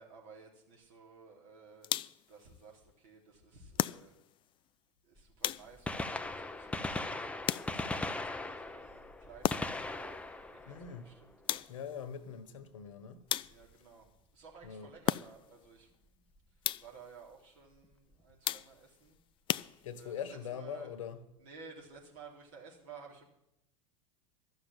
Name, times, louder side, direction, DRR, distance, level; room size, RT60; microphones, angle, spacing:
voice 1, 0.0-1.9 2.3-4.1 5.0-10.2 10.5-11.7 13.4-14.1 14.3-15.9 16.8-19.2 20.0-20.9 21.4-23.2, right 5 dB, 60° right, 3.9 m, -55 dB
sound 1, 1.8-2.4 3.8-4.4 5.4-6.0 7.5-8.1 9.4-9.9 11.5-12.0 13.3-13.9 15.1-15.6 16.6-17.1 18.4-19.0 19.5-20.2, left 13 dB, 30° left, 0.4 m, -36 dB
Gunshot gunfire, 5.2-5.3 5.7-11.6 13.5-13.7 14.7-14.8 16.4-16.5 17.8-17.9 18.1-18.2, left 2 dB, 5° left, 0.7 m, -39 dB
voice 2, 10.7-11.1 11.7-13.2 14.6-14.9 19.8-21.2, left 8 dB, 70° left, 1.4 m, -42 dB
13.0 x 6.8 x 9.0 m
hypercardioid pair, 85°, 17 cm